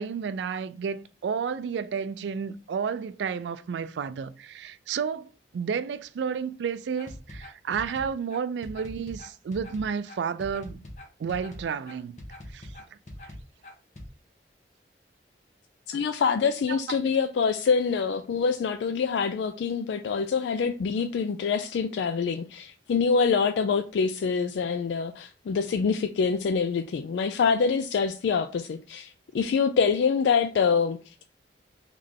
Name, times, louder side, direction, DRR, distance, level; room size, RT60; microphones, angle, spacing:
voice 1, 0.0-10.8 11.2-12.2 12.5-12.7 16.7-17.0 22.2-22.3, right 6 dB, 80° right, 0.3 m, -31 dB
sound 1, 7.0-14.1, left 1 dB, 40° left, 1.0 m, -42 dB
voice 2, 15.9-31.2, left 5 dB, 80° left, 0.3 m, -25 dB
3.8 x 3.2 x 3.5 m
head